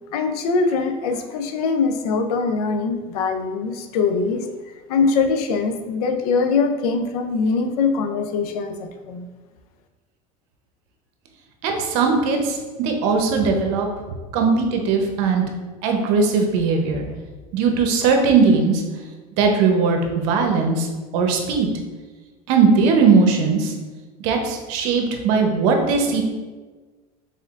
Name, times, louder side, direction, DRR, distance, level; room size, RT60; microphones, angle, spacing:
voice 1, 0.1-4.5 4.9-9.3, left 4 dB, 90° left, 6 dB, 0.5 m, -22 dB
voice 2, 11.6-13.9 14.3-15.4 15.8-17.0 17.5-18.8 19.4-20.9 21.1-21.7 22.5-23.7 24.2-26.2, right 4 dB, 70° right, 3 dB, 0.8 m, -19 dB
4.2 x 3.7 x 2.4 m, 1.3 s
supercardioid pair, 105°, 19 cm